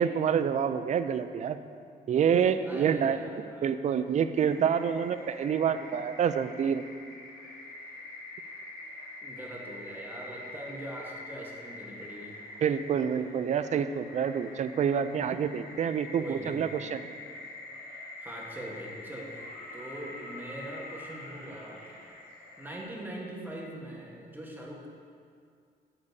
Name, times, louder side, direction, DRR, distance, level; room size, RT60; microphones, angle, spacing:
voice 1, 0.0-1.6 2.1-3.2 3.6-6.8 12.6-17.0, right 7 dB, 45° right, 11 dB, 0.4 m, -27 dB
voice 2, 2.6-3.8 9.2-12.4 16.2-16.6 18.2-21.9 22.6-24.9, right 1 dB, 10° right, -2 dB, 1.3 m, -42 dB
sound 1, 4.3-22.8, left 2 dB, 70° left, 1.2 m, -45 dB
sound 2, 18.9-22.1 23.9-24.0, left 2 dB, 50° left, 1.4 m, -50 dB
8.5 x 7.0 x 2.7 m, 2.2 s
cardioid pair, 90°, 17 cm